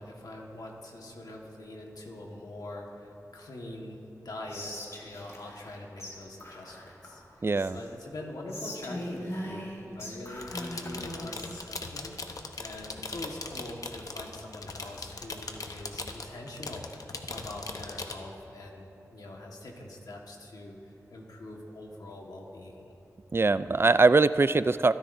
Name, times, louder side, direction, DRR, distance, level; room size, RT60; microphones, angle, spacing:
voice 1, 0.0-4.7 5.0-20.8 21.1-22.9, left 1 dB, 85° left, 0 dB, 1.5 m, -43 dB
Whispering, 4.5-5.7 6.0-6.1 6.4-7.9 8.5-11.6, left 1 dB, 50° left, 2.0 m, -40 dB
voice 2, 7.4-7.8 23.3-24.9, right 3 dB, 40° right, 15 dB, 0.3 m, -22 dB
sound 1, 10.3-18.1, left 3 dB, 65° left, 0.9 m, -40 dB
25.0 x 10.5 x 2.7 m, 2.8 s
cardioid pair, 40°, 6 cm